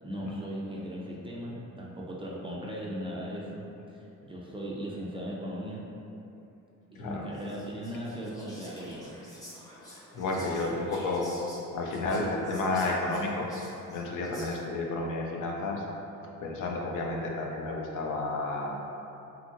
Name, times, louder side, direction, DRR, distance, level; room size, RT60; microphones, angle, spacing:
voice 1, 0.0-3.6 4.2-5.9 6.9-9.2, equal, 15° right, -5 dB, 0.4 m, -38 dB
voice 2, 7.0-7.3 10.1-11.3 11.7-13.5 13.9-15.8 16.4-18.8, left 2 dB, 65° left, -1 dB, 0.5 m, -31 dB
Whispering, 7.3-14.8, equal, 10° left, 0.8 m, -50 dB
2.8 x 2.6 x 2.5 m, 2.8 s
supercardioid pair, 75°, 34 cm